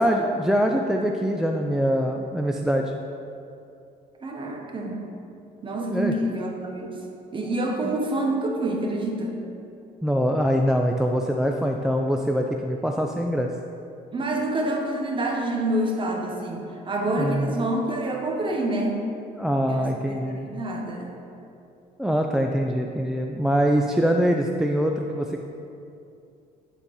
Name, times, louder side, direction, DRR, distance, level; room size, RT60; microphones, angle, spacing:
voice 1, 0.0-2.9 5.9-6.1 10.0-13.5 17.1-17.6 19.4-20.5 22.0-25.4, equal, 5° right, 2 dB, 0.4 m, -23 dB
voice 2, 4.2-5.0 5.6-7.0 7.3-9.3 14.1-19.0 19.7-21.2, right 1 dB, 30° right, 0 dB, 1.3 m, -27 dB
9.6 x 4.2 x 5.4 m, 2.7 s
cardioid pair, 110°, 17 cm